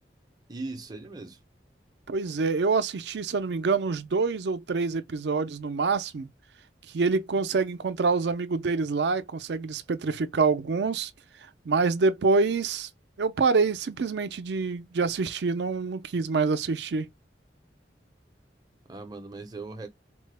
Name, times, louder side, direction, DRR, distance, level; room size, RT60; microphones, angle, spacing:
voice 1, 0.5-1.4 18.9-19.9, right 3 dB, 25° right, 0.6 m, -39 dB
voice 2, 2.1-6.3 6.9-11.1 11.6-12.9 13.2-17.1, right 4 dB, 70° right, 0.5 m, -26 dB
4.3 x 2.1 x 3.2 m
head